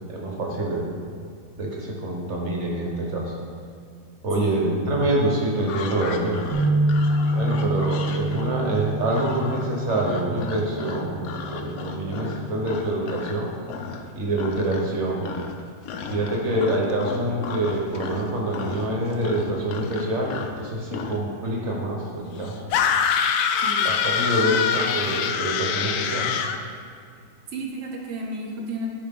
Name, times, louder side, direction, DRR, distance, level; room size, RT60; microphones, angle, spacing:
voice 1, 0.1-0.8 1.6-3.3 4.2-6.4 7.3-13.5 14.1-15.2 16.1-22.7 23.8-26.3, right 1 dB, 40° right, -2 dB, 1.4 m, -26 dB
voice 2, 4.4-5.1 23.6-24.0 27.5-28.9, right 2 dB, 65° right, 0 dB, 0.7 m, -33 dB
sound 1, 5.6-13.4 13.7-14.1 14.3-15.0 15.2-21.2, left 5 dB, 70° left, 0.9 m, -36 dB
sound 2, 6.5-12.8, right 1 dB, 85° right, 1.9 m, -27 dB
sound 3, 22.7-26.6, left 7 dB, 85° left, 1.3 m, -23 dB
10.5 x 4.7 x 3.7 m, 2.3 s
omnidirectional pair, 2.1 m